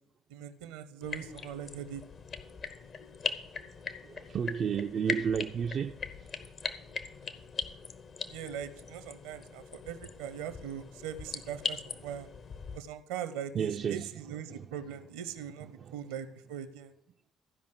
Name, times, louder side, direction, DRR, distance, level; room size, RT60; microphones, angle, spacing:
voice 1, 0.3-2.0 8.3-12.3 12.7-16.9, right 9 dB, 75° right, 0.7 m, -41 dB
sound 1, 1.0-12.8, left 5 dB, 45° left, 0.9 m, -40 dB
voice 2, 4.1-5.9 13.5-14.7 15.8-15.9, right 7 dB, 50° right, 0.4 m, -32 dB
14.0 x 5.3 x 6.6 m
figure-of-eight pair, 50°, 0 cm